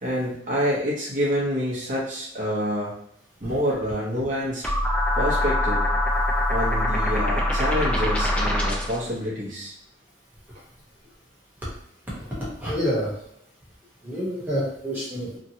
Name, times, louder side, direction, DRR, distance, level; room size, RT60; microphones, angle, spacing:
voice 1, 0.0-2.9 3.4-4.7 5.1-5.8 6.5-9.7, equal, 45° right, -6 dB, 0.9 m, -27 dB
sound 1, 4.6-9.0, left 1 dB, 5° left, 0.4 m, -23 dB
voice 2, 12.1-13.2 14.0-15.4, equal, 10° right, -7 dB, 1.1 m, -28 dB
2.9 x 2.4 x 2.8 m, 0.72 s
head